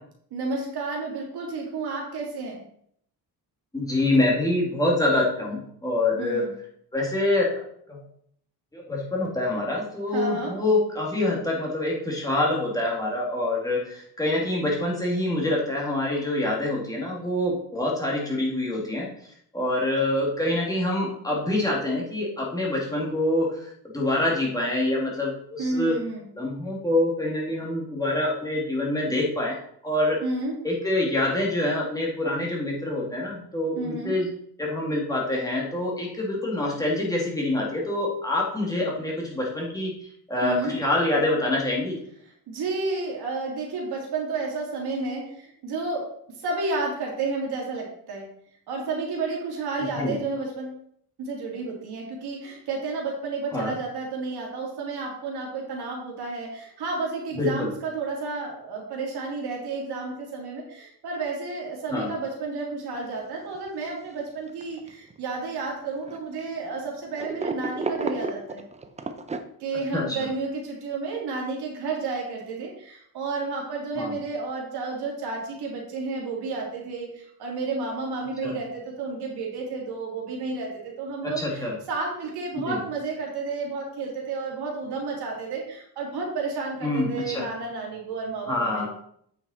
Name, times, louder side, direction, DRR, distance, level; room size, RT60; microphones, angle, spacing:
voice 1, 0.3-2.6 6.2-6.5 10.1-10.6 25.6-26.3 30.2-30.6 33.7-34.1 40.4-40.8 42.5-46.1 46.4-48.3 48.7-50.8 51.2-68.7 69.6-88.9, right 3 dB, 75° right, -2 dB, 3.2 m, -31 dB
voice 2, 3.7-6.4 6.9-7.6 7.9-8.0 8.7-19.1 19.5-23.6 23.9-26.0 26.4-29.6 29.8-30.2 30.6-34.3 34.6-39.9 40.3-42.0 49.8-50.1 53.5-53.7 57.3-57.7 61.9-62.1 69.9-70.2 74.0-74.1 78.4-78.5 81.4-81.7 82.6-82.8 86.8-87.5 88.5-88.9, left 1 dB, 10° left, -4 dB, 2.6 m, -26 dB
sound 1, 63.1-63.2 63.6-63.7 64.5-65.2 66.1-66.4 67.2-69.4, right 3 dB, 15° right, 0.6 m, -31 dB
8.8 x 6.0 x 4.4 m, 0.69 s
cardioid pair, 135°, 39 cm